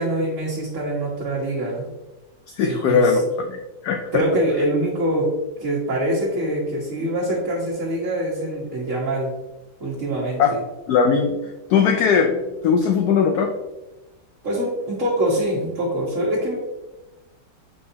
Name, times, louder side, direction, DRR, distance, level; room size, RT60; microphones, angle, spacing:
voice 1, 0.0-1.9 2.6-3.2 4.1-5.3 5.6-9.3 9.8-10.6 14.4-16.6, right 1 dB, 45° right, -6 dB, 1.5 m, -24 dB
voice 2, 2.6-3.6 3.8-4.2 10.4-10.5 10.9-11.3 11.7-12.4 12.6-13.5, left 6 dB, 70° left, 3 dB, 1.0 m, -19 dB
8.2 x 4.7 x 2.7 m, 1.1 s
omnidirectional pair, 2.0 m